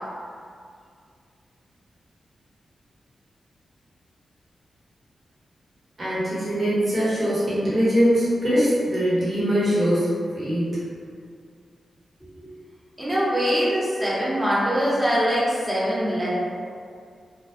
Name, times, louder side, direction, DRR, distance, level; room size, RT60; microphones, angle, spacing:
voice 1, 6.0-10.7, equal, 40° right, -11 dB, 1.2 m, -22 dB
voice 2, 13.0-16.3, equal, 20° right, -9 dB, 1.0 m, -23 dB
2.2 x 2.1 x 2.9 m, 2.2 s
supercardioid pair, 40°, 0 cm